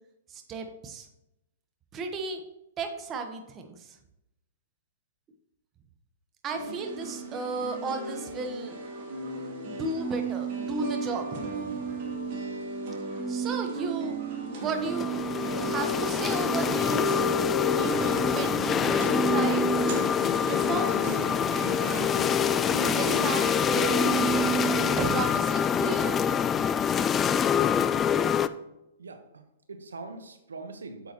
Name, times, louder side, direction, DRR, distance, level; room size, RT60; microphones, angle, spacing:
voice 1, 0.3-1.1 1.9-2.4 2.8-4.0 6.4-8.8 9.6-12.0 13.3-15.2 15.6-17.2 17.6-19.9 20.3-21.3 22.6-24.3 25.0-26.1, right 4 dB, 25° right, 5 dB, 1.2 m, -34 dB
sound 1, 6.5-25.2, right 4 dB, 50° right, 2.6 m, -33 dB
sound 2, 14.7-28.5, left 8 dB, 20° left, 0.4 m, -26 dB
voice 2, 29.0-31.1, right 3 dB, 90° right, 7 dB, 1.1 m, -43 dB
8.7 x 7.6 x 3.0 m, 0.89 s
hypercardioid pair, 125°, 0 cm